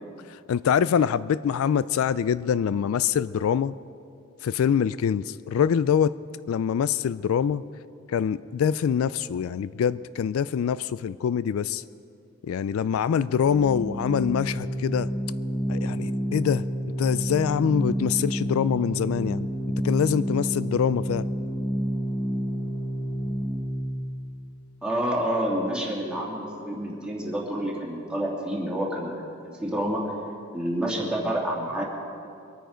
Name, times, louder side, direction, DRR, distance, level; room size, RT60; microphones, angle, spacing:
voice 1, 0.5-3.7 4.4-6.2 6.5-7.6 8.1-11.8 12.4-15.1 15.7-16.7 17.0-19.5 19.8-21.3, left 7 dB, 80° left, 17 dB, 0.3 m, -24 dB
Organ, 13.3-24.0, equal, 15° left, 1.1 m, -29 dB
voice 2, 24.8-29.2 29.6-30.0 30.5-31.8, right 1 dB, 5° right, -4 dB, 2.6 m, -28 dB
23.5 x 9.2 x 5.1 m, 2.5 s
head